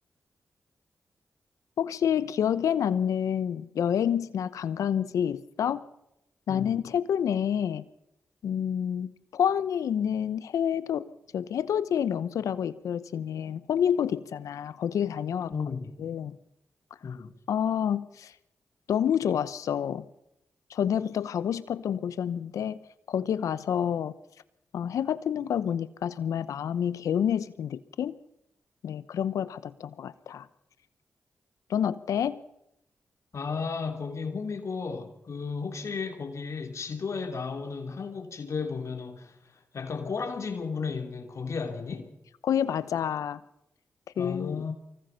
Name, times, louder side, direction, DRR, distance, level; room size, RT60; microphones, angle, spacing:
voice 1, 1.8-5.8 6.5-7.8 8.4-11.1 11.3-15.5 16.0-16.4 17.5-18.3 18.9-20.0 20.7-22.8 23.1-24.1 24.7-28.2 28.8-30.5 31.7-32.4 42.4-43.4 44.2-44.6, left 8 dB, 85° left, 0.8 m, -28 dB
voice 2, 15.5-15.9 17.0-17.3 33.3-42.1 44.2-44.7, left 5 dB, 65° left, 3.0 m, -34 dB
24.5 x 20.5 x 5.8 m
supercardioid pair, 40°, 5 cm